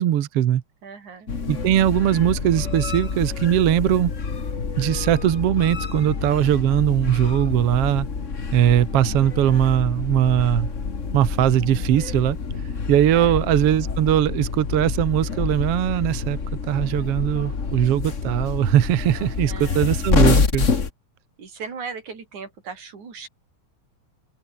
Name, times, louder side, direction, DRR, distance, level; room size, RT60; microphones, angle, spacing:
voice 1, 0.0-0.6 1.5-4.1 4.8-8.1 8.5-10.7 11.1-12.4 12.9-16.4 16.7-20.7, right 11 dB, 60° right, 1.9 m, -20 dB
voice 2, 0.8-1.3 13.1-13.4 19.4-20.3 21.4-23.3, right 5 dB, 80° right, 5.9 m, -38 dB
sound 1, 1.3-20.9, left 5 dB, 30° left, 1.7 m, -27 dB
open air
omnidirectional pair, 3.3 m